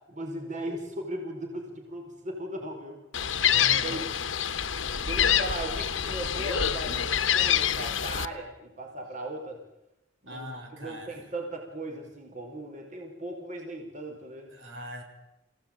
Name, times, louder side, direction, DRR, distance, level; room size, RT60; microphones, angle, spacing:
voice 1, 0.1-3.0 3.8-4.0 5.0-9.6 10.2-10.5 10.7-14.5, right 1 dB, 40° right, 2 dB, 5.1 m, -37 dB
Gull seagull, 3.1-8.3, left 9 dB, 80° left, 1.2 m, -26 dB
voice 2, 3.4-4.1 4.4-4.5 10.3-11.3 14.5-15.0, equal, 75° right, 3 dB, 6.1 m, -40 dB
28.0 x 17.5 x 9.1 m, 0.90 s
head